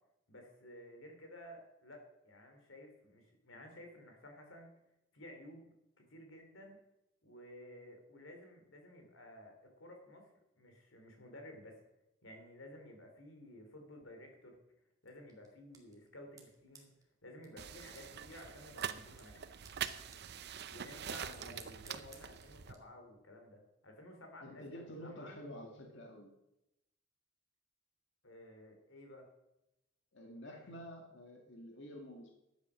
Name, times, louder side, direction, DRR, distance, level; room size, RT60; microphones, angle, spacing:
voice 1, 0.3-4.7 5.1-5.7 6.0-6.8 7.2-10.3 10.6-11.8 12.2-14.5 15.0-16.9 17.2-19.5 20.7-25.3 28.2-29.3 30.5-30.8, left 1 dB, 85° left, 3 dB, 3.2 m, -54 dB
sound 1, 15.0-22.8, right 4 dB, 20° right, 2.3 m, -63 dB
sound 2, 17.6-22.7, right 8 dB, 60° right, 0.6 m, -44 dB
voice 2, 21.2-21.7 24.4-26.3 30.1-32.3, equal, 65° left, 1 dB, 2.0 m, -49 dB
12.0 x 8.5 x 6.3 m, 0.88 s
head